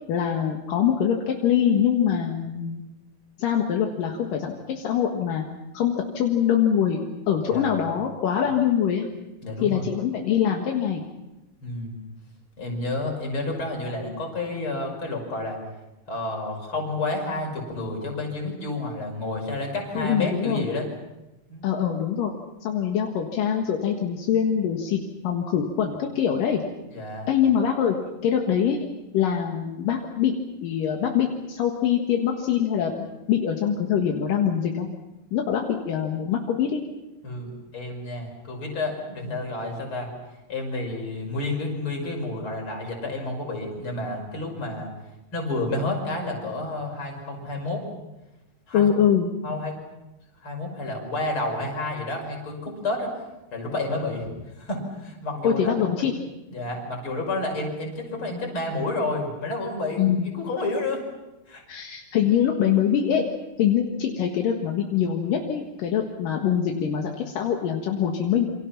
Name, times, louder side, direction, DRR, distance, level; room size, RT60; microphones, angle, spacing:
voice 1, 0.1-2.8 3.4-5.4 5.7-7.0 7.3-9.1 9.6-11.1 19.9-20.7 21.6-22.3 22.6-26.6 27.3-28.0 28.2-28.8 29.1-30.3 30.6-34.9 35.3-36.8 48.7-49.3 55.4-56.1 60.0-60.3 61.7-63.2 63.6-68.5, left 8 dB, 75° left, 1 dB, 3.3 m, -24 dB
voice 2, 9.4-9.9 11.6-12.0 12.6-15.6 16.1-20.9 21.5-21.7 26.9-27.3 37.2-40.1 40.5-44.9 45.3-47.9 48.7-48.9 49.4-49.8 50.4-53.1 53.5-54.3 54.6-55.8 56.5-61.0 61.5-61.6, left 2 dB, 35° left, 1 dB, 6.4 m, -30 dB
28.0 x 26.0 x 5.9 m, 0.98 s
omnidirectional pair, 4.0 m